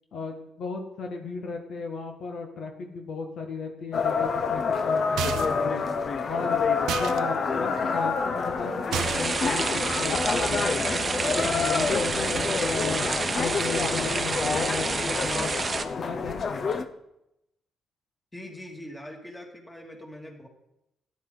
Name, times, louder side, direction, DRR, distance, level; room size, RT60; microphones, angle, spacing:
voice 1, 0.1-5.8 6.3-6.7 7.0-8.7 9.0-13.0 13.4-15.5 16.0-16.6, left 4 dB, 70° left, 3 dB, 1.8 m, -35 dB
sound 1, 3.9-16.9, left 5 dB, 50° left, 0.9 m, -28 dB
sound 2, 5.2-5.7 6.9-7.2 8.9-9.4, right 10 dB, 85° right, 0.6 m, -31 dB
sound 3, 8.9-15.9, right 4 dB, 30° right, 0.9 m, -29 dB
voice 2, 18.3-20.5, left 1 dB, 15° left, 1 dB, 2.7 m, -42 dB
13.5 x 10.5 x 4.2 m, 0.85 s
cardioid pair, 90°, 0 cm